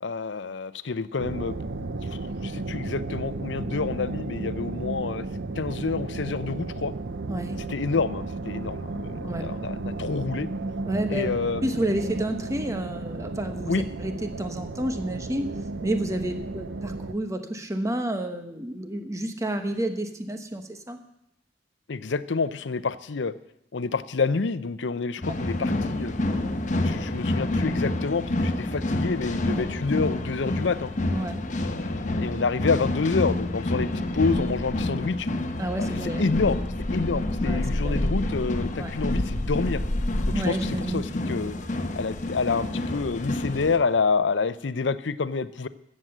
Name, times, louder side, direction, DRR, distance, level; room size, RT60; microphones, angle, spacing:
voice 1, 0.0-2.1 2.4-5.2 5.6-6.9 7.6-10.5 11.1-11.7 13.7-13.8 21.9-23.3 23.7-26.4 26.8-30.9 31.6-35.3 35.8-35.9 36.2-39.8 40.5-41.6 42.0-45.7, left 4 dB, 85° left, 15 dB, 0.6 m, -28 dB
sound 1, 1.2-17.1, right 3 dB, 80° right, 0.7 m, -34 dB
voice 2, 7.3-7.6 9.1-9.5 10.9-11.3 11.6-15.5 15.8-21.0 29.5-29.6 31.1-31.4 35.6-36.3 37.4-38.0 38.8-38.9 40.3-41.1, right 1 dB, 20° right, 6 dB, 1.2 m, -30 dB
sound 2, 25.2-43.8, left 1 dB, 45° left, 1.0 m, -28 dB
13.5 x 7.6 x 7.9 m, 0.80 s
head